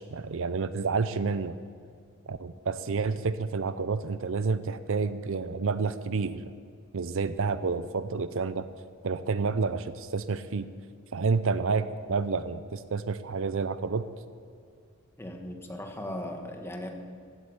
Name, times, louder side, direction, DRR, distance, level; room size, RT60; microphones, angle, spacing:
voice 1, 0.0-1.5 2.3-6.5 6.9-8.7 9.0-10.6 11.1-14.1, right 4 dB, 60° right, 13 dB, 0.6 m, -29 dB
voice 2, 15.2-16.9, left 1 dB, 10° left, 3 dB, 1.5 m, -37 dB
15.5 x 8.7 x 9.7 m, 2.3 s
head